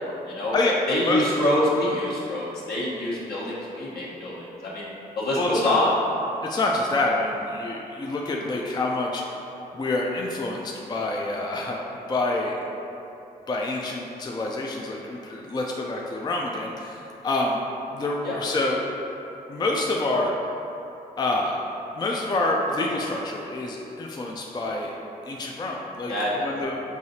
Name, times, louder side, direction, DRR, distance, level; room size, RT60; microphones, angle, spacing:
voice 1, 0.0-0.5 0.9-4.9 5.1-5.9 18.2-18.4 26.1-26.4, left 1 dB, 65° left, -7 dB, 1.1 m, -26 dB
voice 2, 0.5-1.2 5.3-5.7 6.4-9.4 9.7-12.6 13.5-17.6 17.9-18.8 19.5-20.3 21.2-21.6 22.0-24.9 25.2-26.1 26.4-26.8, left 2 dB, 25° left, -1 dB, 0.4 m, -27 dB
4.7 x 2.7 x 2.8 m, 2.9 s
supercardioid pair, 45°, 18 cm